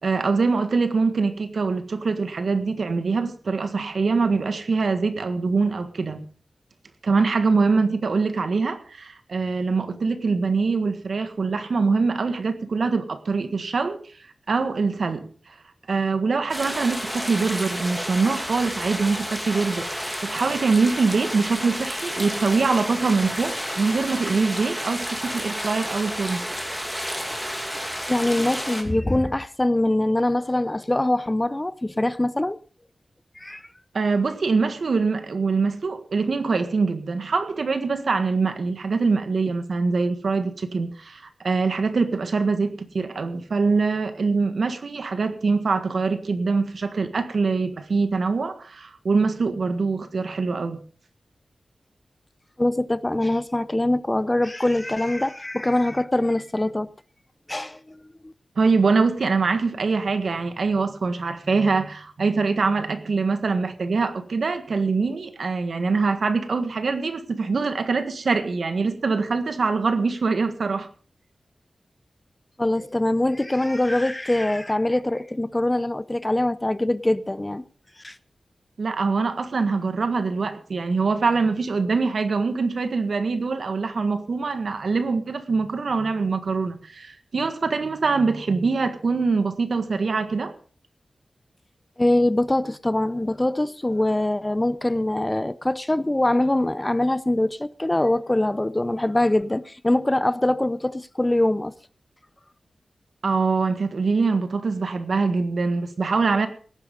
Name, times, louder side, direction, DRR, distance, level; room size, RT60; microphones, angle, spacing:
voice 1, 0.0-6.2 7.0-14.0 14.5-15.3 15.9-19.9 20.2-26.4 33.9-50.8 58.6-70.9 78.8-90.5 103.2-106.5, right 4 dB, 70° right, 1.6 m, -23 dB
sound 1, 16.5-28.8, equal, 5° right, 2.6 m, -31 dB
voice 2, 28.1-32.6 33.4-33.6 52.6-56.9 57.5-58.3 72.6-77.6 78.0-78.2 92.0-101.7, left 1 dB, 20° left, 0.6 m, -23 dB
18.0 x 10.0 x 5.2 m
wide cardioid pair, 105°, 0 cm